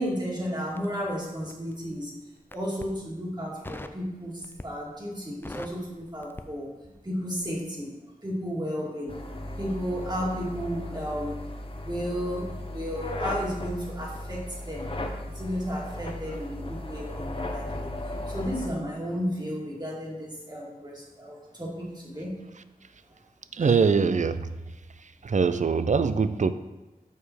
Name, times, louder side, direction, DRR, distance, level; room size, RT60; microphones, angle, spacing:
voice 1, 0.0-2.1 2.5-6.7 7.0-8.0 8.2-9.1 9.6-11.4 11.7-12.4 12.7-18.0 18.3-22.4 23.6-23.7, equal, 25° right, -4 dB, 2.0 m, -33 dB
Crackle, 0.7-1.8 2.4-3.0 3.6-4.0 4.4-4.9 5.2-7.1 7.4-7.6, left 1 dB, 15° left, 0.4 m, -42 dB
sound 1, 9.1-18.7, left 1 dB, 35° left, 0.8 m, -36 dB
voice 2, 23.5-24.6 25.2-26.5, right 5 dB, 50° right, 12 dB, 0.4 m, -23 dB
6.8 x 5.0 x 4.4 m, 1.0 s
wide cardioid pair, 60°, 15 cm